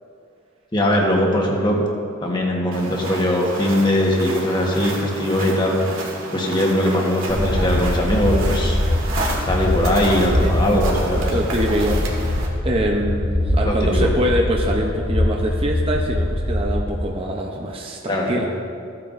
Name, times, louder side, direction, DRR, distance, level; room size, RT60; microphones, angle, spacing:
voice 1, 0.7-1.8 2.2-5.8 6.3-8.8 9.4-11.3 13.6-14.1 18.1-18.5, left 1 dB, 20° left, -1 dB, 1.2 m, -20 dB
sound 1, 2.7-12.5, right 2 dB, 85° right, 1.9 m, -31 dB
sound 2, 7.3-17.0, left 1 dB, 65° left, 1.3 m, -22 dB
voice 2, 11.2-18.5, equal, 25° right, 0 dB, 0.6 m, -24 dB
15.0 x 8.9 x 2.6 m, 2.3 s
head